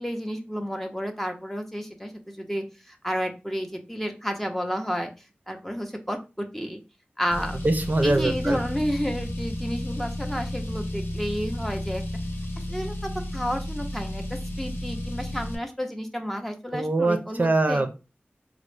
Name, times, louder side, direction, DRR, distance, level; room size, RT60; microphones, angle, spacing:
voice 1, 0.0-5.1 5.5-6.8 7.2-7.6 8.0-12.0 12.6-17.8, equal, 5° left, 4 dB, 0.6 m, -31 dB
Car, 7.3-15.6, left 1 dB, 80° left, 0.6 m, -32 dB
voice 2, 7.6-8.6 16.7-17.9, right 2 dB, 45° right, 5 dB, 0.5 m, -23 dB
3.9 x 2.0 x 3.1 m, 0.29 s
wide cardioid pair, 65°, 4 cm